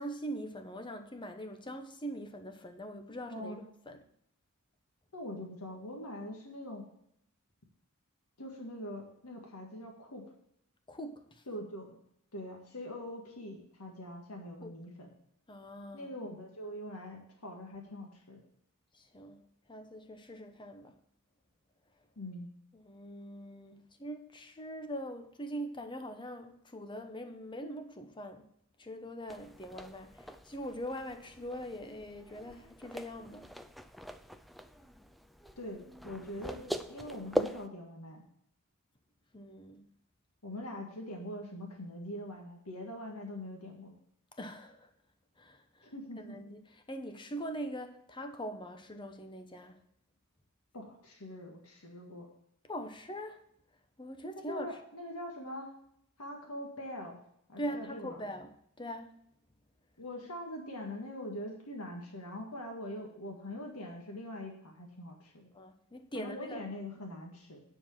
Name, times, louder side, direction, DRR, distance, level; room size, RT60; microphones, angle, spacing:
voice 1, 0.0-3.6 3.9-4.0 10.9-11.4 14.6-14.7 15.5-16.1 18.9-21.0 22.7-28.4 28.8-33.5 39.3-39.9 44.4-44.9 45.4-49.8 52.7-53.4 54.0-54.7 57.6-59.2 65.5-66.7, equal, 20° left, 0.9 m, -42 dB
voice 2, 3.3-3.6 5.1-6.9 8.4-10.2 11.5-12.0 12.3-15.1 15.9-18.4 22.2-22.5 35.6-38.2 40.4-44.0 45.8-46.4 50.7-52.3 54.5-55.8 56.2-57.2 57.5-58.2 60.0-65.5 66.1-67.6, left 1 dB, 80° left, 1.8 m, -43 dB
sound 1, 29.3-37.7, equal, ahead, 0.4 m, -41 dB
9.8 x 4.7 x 7.2 m
head